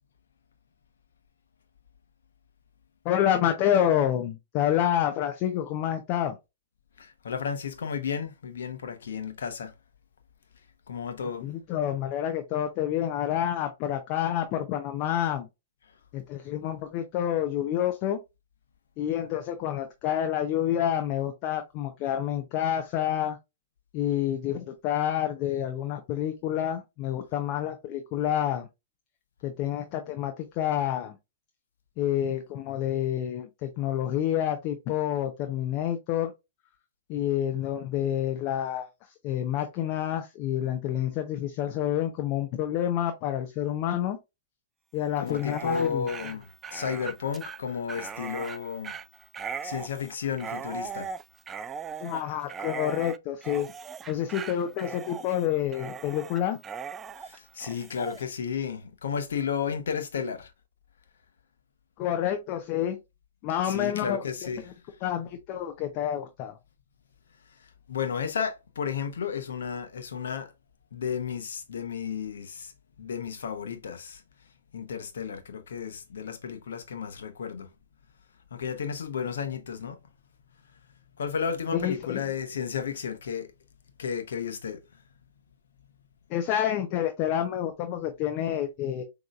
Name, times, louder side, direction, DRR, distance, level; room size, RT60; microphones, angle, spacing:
voice 1, 3.0-6.4 11.4-15.5 16.1-18.2 19.0-23.4 23.9-28.7 29.4-31.2 32.0-36.3 37.1-38.9 39.2-44.2 44.9-46.3 52.0-53.7 54.1-56.6 62.0-63.0 63.4-64.5 65.0-66.5 81.7-82.2 86.3-89.0, left 11 dB, 40° left, 0.7 m, -28 dB
voice 2, 7.0-9.7 10.9-11.5 45.2-49.0 49.6-51.1 57.2-60.5 63.7-64.6 67.9-70.5 70.9-72.7 73.0-74.2 74.7-77.7 78.5-80.0 81.2-83.5 84.0-84.8, left 6 dB, 70° left, 1.0 m, -33 dB
Dog, 45.2-58.2, right 6 dB, 20° right, 0.3 m, -39 dB
6.2 x 3.0 x 2.4 m
hypercardioid pair, 120°, 0 cm